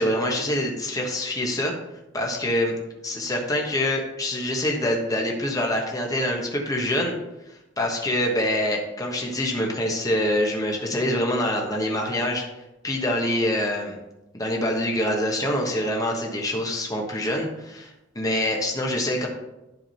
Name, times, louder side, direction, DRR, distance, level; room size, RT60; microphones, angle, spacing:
voice 1, 0.0-1.7 2.1-2.7 3.0-7.1 7.8-12.4 12.8-14.0 14.3-19.3, left 1 dB, 20° left, 0 dB, 1.3 m, -25 dB
10.5 x 3.6 x 5.6 m, 0.94 s
head